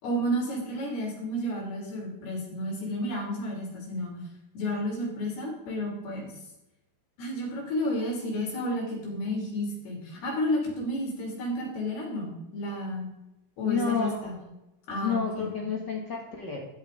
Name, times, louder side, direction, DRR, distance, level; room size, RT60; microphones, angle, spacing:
voice 1, 0.0-4.2 4.6-6.3 7.2-13.1 13.6-14.4 14.9-15.5, equal, 85° left, -2 dB, 5.2 m, -31 dB
voice 2, 13.6-14.3 15.0-16.6, left 6 dB, 65° left, -1 dB, 1.1 m, -30 dB
13.0 x 8.8 x 3.3 m, 0.93 s
omnidirectional pair, 4.4 m